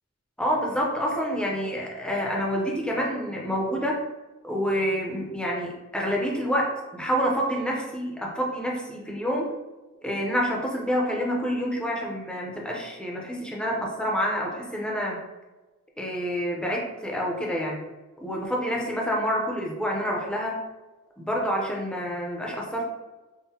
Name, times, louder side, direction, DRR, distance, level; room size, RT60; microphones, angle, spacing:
voice 1, 0.4-4.0 4.4-9.5 10.0-15.2 16.0-17.8 18.2-20.6 21.2-22.8, equal, 5° left, -2 dB, 0.6 m, -28 dB
5.6 x 2.1 x 2.8 m, 1.2 s
head